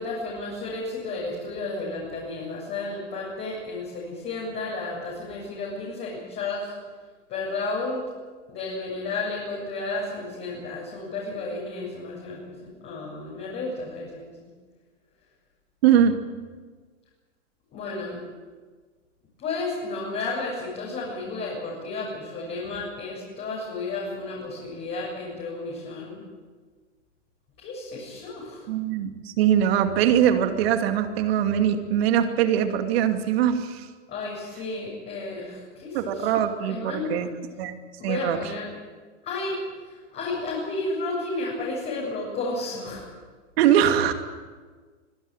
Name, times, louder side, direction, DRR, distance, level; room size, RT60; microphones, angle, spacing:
voice 1, 0.0-6.7 7.3-8.0 8.5-14.2 17.7-18.2 19.4-26.2 27.6-28.6 34.1-36.3 36.7-37.1 38.0-38.7 39.2-39.6 40.1-43.0, left 3 dB, 30° left, -5 dB, 7.5 m, -32 dB
voice 2, 15.8-16.2 28.7-33.9 35.9-37.3 37.6-37.8 38.0-38.4 43.6-44.1, right 9 dB, 55° right, 7 dB, 2.6 m, -22 dB
25.0 x 16.5 x 9.0 m, 1.5 s
hypercardioid pair, 135°, 37 cm